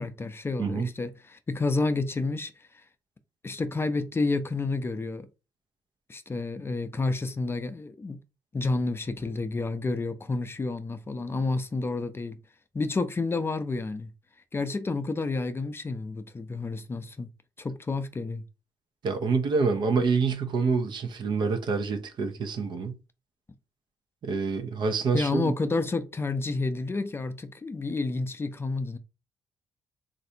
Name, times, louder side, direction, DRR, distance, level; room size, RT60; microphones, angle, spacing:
voice 1, 0.0-2.8 3.4-5.3 6.1-8.2 8.5-12.4 12.7-14.1 14.5-17.3 17.6-18.4 25.1-29.0, left 3 dB, 30° left, 0.4 m, -30 dB
voice 2, 19.0-23.0 24.2-25.5, right 4 dB, 65° right, 0.6 m, -27 dB
3.2 x 2.5 x 2.7 m
supercardioid pair, 60°, 8 cm